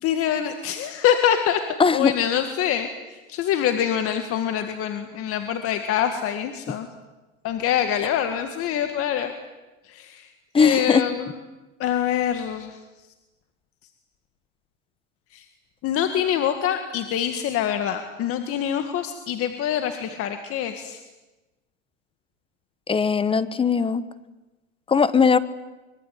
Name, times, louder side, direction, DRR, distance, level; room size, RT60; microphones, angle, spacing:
voice 1, 0.0-1.6 1.9-6.9 7.4-9.3 9.9-10.3 10.6-11.3 11.8-12.8 15.3-15.4 15.8-21.0, left 9 dB, 40° left, 7 dB, 1.9 m, -25 dB
voice 2, 1.8-2.1 10.5-11.0 22.9-24.0 24.9-25.4, left 5 dB, 15° left, 15 dB, 1.2 m, -19 dB
24.5 x 23.0 x 9.4 m, 1.1 s
supercardioid pair, 135°, 35 cm